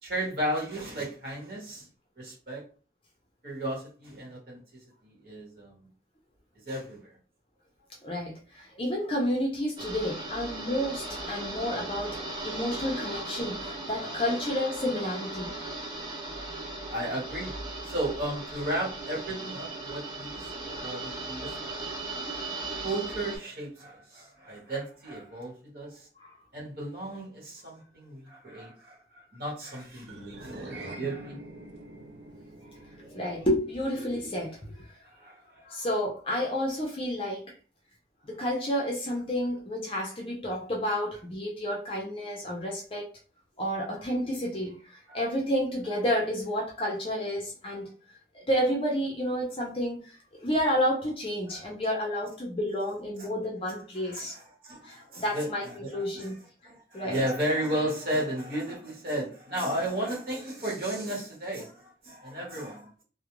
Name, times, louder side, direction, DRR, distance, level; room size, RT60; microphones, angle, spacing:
voice 1, 0.0-1.9 2.2-2.6 3.4-4.6 5.0-5.9 6.6-7.1 16.9-17.5 17.8-22.0 22.8-26.1 26.5-31.4 35.0-35.4 45.1-45.2 51.5-51.6 53.2-53.3 54.0-56.4 56.6-63.0, right 1 dB, 55° right, 1.1 m, -34 dB
voice 2, 8.0-15.5 26.2-26.3 33.0-34.8 35.6-37.5 38.2-43.1 43.6-47.9 48.3-54.3 54.8-56.4 56.9-57.2, equal, 30° left, 0.5 m, -30 dB
sound 1, 9.8-23.4, right 2 dB, 25° right, 0.6 m, -37 dB
sound 2, 30.0-34.6, right 2 dB, 80° right, 0.5 m, -46 dB
2.3 x 2.1 x 2.9 m
head